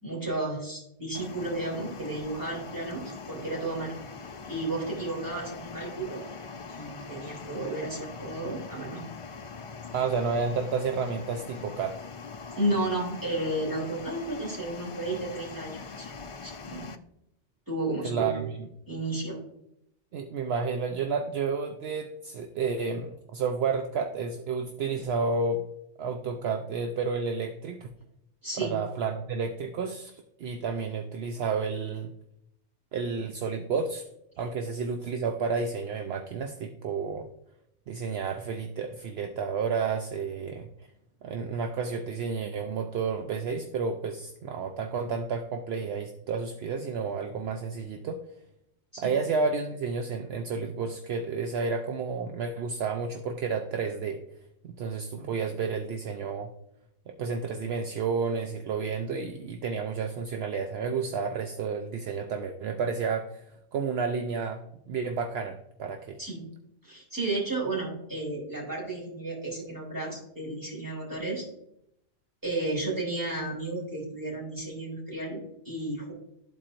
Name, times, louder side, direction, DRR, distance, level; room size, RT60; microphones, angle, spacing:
voice 1, 0.0-4.0 4.5-6.2 6.8-9.0 12.6-16.9 17.7-18.4 18.9-19.4 28.4-28.8 48.9-49.1 66.2-66.5 66.8-71.5 72.4-76.1, right 2 dB, 15° right, -4 dB, 3.0 m, -33 dB
sound 1, 1.1-17.0, left 5 dB, 55° left, 0.3 m, -42 dB
voice 2, 9.9-12.0 18.0-18.7 20.1-25.6 26.0-27.9 28.6-32.1 32.9-34.0 34.4-37.3 37.9-40.7 41.2-48.2 49.0-54.2 54.6-56.5 57.1-63.4 63.7-66.2, right 5 dB, 70° right, 5 dB, 0.8 m, -31 dB
12.5 x 4.3 x 2.5 m, 0.79 s
omnidirectional pair, 1.1 m